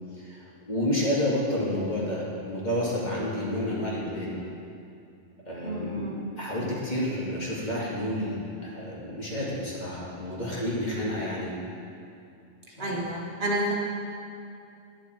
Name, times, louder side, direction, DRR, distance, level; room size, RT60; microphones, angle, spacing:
voice 1, 0.2-4.3 5.5-6.1 6.4-11.5 12.8-12.9, left 1 dB, 35° left, -6 dB, 2.5 m, -30 dB
voice 2, 5.6-6.3 12.8-13.7, right 1 dB, 50° right, -4 dB, 1.7 m, -30 dB
10.5 x 10.5 x 4.6 m, 2.6 s
omnidirectional pair, 1.3 m